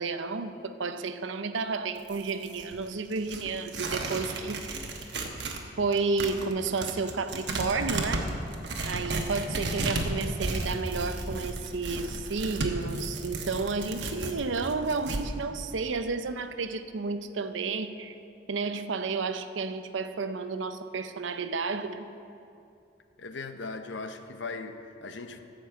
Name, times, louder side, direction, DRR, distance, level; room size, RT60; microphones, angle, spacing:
voice 1, 0.0-4.8 5.8-8.3 8.8-18.2 18.5-22.1, right 4 dB, 80° right, 10 dB, 0.6 m, -31 dB
Tearing, 2.0-5.6 5.9-15.2, right 2 dB, 60° right, 1.1 m, -33 dB
voice 2, 23.2-25.4, left 3 dB, 75° left, 8 dB, 0.7 m, -38 dB
14.0 x 5.3 x 7.5 m, 2.6 s
head